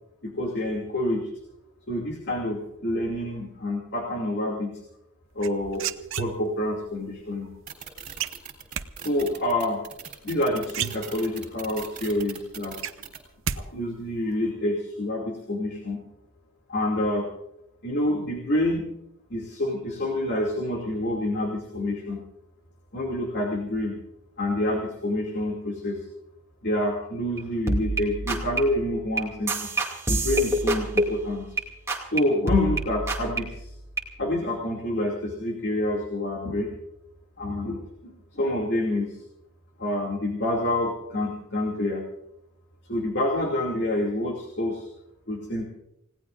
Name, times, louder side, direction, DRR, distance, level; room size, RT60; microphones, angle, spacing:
voice 1, 0.2-1.3 1.9-4.8 5.3-7.5 9.0-9.8 10.2-12.9 13.5-16.0 16.7-17.3 17.8-18.9 19.3-22.2 22.9-24.0 24.4-26.1 26.6-29.7 30.1-31.5 32.1-33.7 34.2-36.7 37.4-39.2 39.8-42.0 42.9-44.9 45.3-45.6, left 1 dB, 50° left, -1 dB, 2.6 m, -27 dB
sound 1, 5.4-6.7 8.2-8.9 10.3-10.4 10.7-11.5 11.9-12.0 12.4-13.6 13.9-14.3, right 8 dB, 60° right, 0.8 m, -32 dB
sound 2, 7.7-13.2, right 8 dB, 35° right, 3.5 m, -40 dB
sound 3, 27.4-27.5 27.7-31.6 31.9-32.2 32.5-34.1, right 2 dB, 10° right, 2.4 m, -27 dB
29.0 x 18.0 x 2.6 m, 0.83 s
head